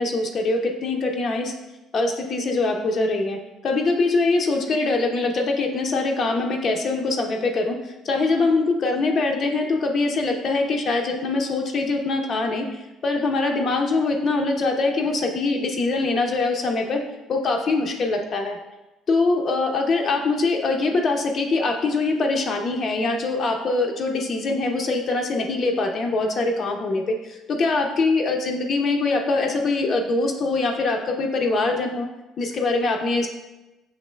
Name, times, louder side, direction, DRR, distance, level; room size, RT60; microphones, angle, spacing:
voice 1, 0.0-1.5 1.9-3.4 3.6-12.7 13.0-17.0 17.3-18.6 19.1-32.1 32.4-33.3, left 3 dB, 45° left, 3 dB, 0.5 m, -23 dB
6.3 x 3.0 x 2.2 m, 1.0 s
hypercardioid pair, 55°, 0 cm